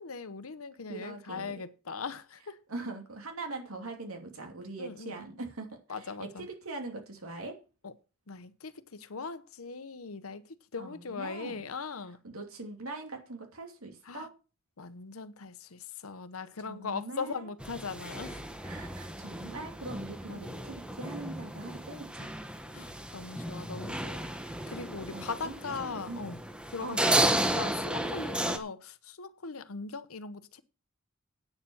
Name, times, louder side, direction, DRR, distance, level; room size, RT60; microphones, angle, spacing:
voice 1, 0.0-2.6 4.8-5.1 5.9-6.5 7.8-7.9 8.3-12.2 14.1-14.3 14.8-18.4 20.3-20.6 22.7-26.4 26.7-27.0 27.5-30.6, left 5 dB, 80° left, 0.9 m, -40 dB
voice 2, 0.9-1.6 2.7-7.6 10.8-11.6 12.2-14.3 16.6-17.5 18.6-22.3 25.1-26.3 26.8-27.1, right 2 dB, 85° right, 2.9 m, -42 dB
sound 1, 17.6-28.6, right 1 dB, 5° right, 1.0 m, -33 dB
9.1 x 7.1 x 7.1 m
head